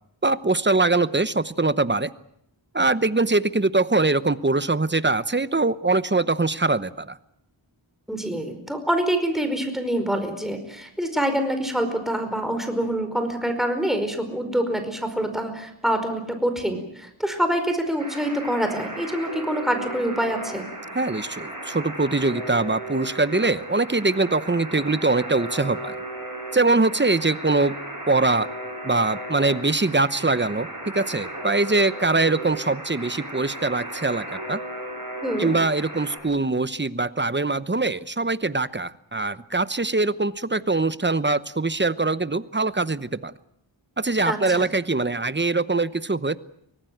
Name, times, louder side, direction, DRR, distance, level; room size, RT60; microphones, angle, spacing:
voice 1, 0.2-2.1 2.7-7.2 20.9-26.0 26.5-27.8 28.1-28.5 28.8-30.7 30.9-34.6 35.4-43.3 44.0-46.4, right 3 dB, 25° right, 15 dB, 0.9 m, -23 dB
voice 2, 8.1-20.7 35.2-35.5 44.2-44.7, right 1 dB, ahead, 6 dB, 4.9 m, -26 dB
Alarm, 18.0-36.2, right 1 dB, 40° right, 6.6 m, -35 dB
25.0 x 18.5 x 9.2 m, 0.75 s
wide cardioid pair, 50°, 47 cm